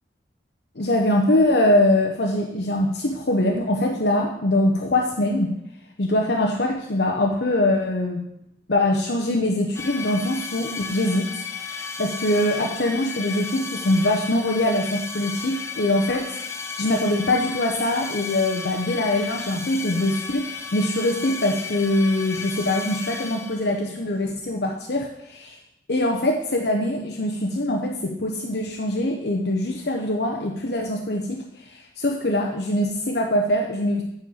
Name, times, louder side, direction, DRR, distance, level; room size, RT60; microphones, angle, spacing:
voice 1, 0.8-5.5 6.0-8.2 8.7-11.3 11.6-25.6 25.9-34.0, left 1 dB, 60° left, 1 dB, 0.9 m, -23 dB
sound 1, 9.8-23.9, left 5 dB, 15° left, 0.7 m, -34 dB
9.7 x 4.5 x 7.1 m, 0.78 s
head